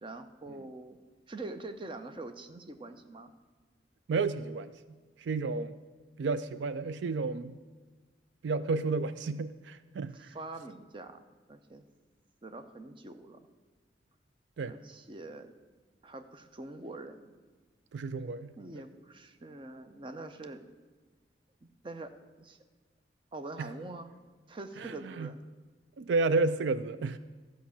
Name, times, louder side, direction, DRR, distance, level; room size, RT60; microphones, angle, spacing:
voice 1, 0.0-1.0 1.3-3.3 10.1-11.2 11.5-11.8 12.4-13.4 14.6-15.5 16.0-17.3 18.6-20.6 21.6-22.1 22.4-22.6 23.3-24.1 24.5-25.4, right 2 dB, 30° right, 8 dB, 0.6 m, -44 dB
voice 2, 4.1-4.7 5.2-5.7 6.2-7.6 8.4-10.3 14.6-14.7 17.9-18.5 23.6-23.7 24.8-25.3 26.0-27.2, right 3 dB, 70° right, 13 dB, 0.4 m, -31 dB
13.0 x 5.1 x 7.1 m, 1.3 s
head